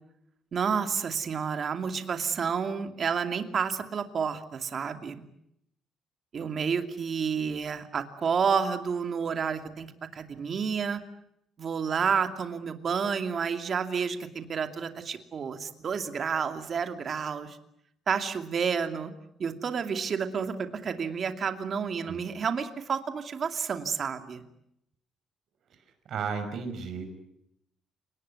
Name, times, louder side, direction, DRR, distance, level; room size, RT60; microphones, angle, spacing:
voice 1, 0.5-5.2 6.3-11.0 11.6-17.6 18.1-19.1 19.4-24.4, right 6 dB, 40° right, 8 dB, 2.5 m, -30 dB
voice 2, 26.1-27.1, right 5 dB, 55° right, 8 dB, 5.6 m, -33 dB
29.0 x 19.0 x 9.5 m, 0.78 s
cardioid pair, 150°, 0 cm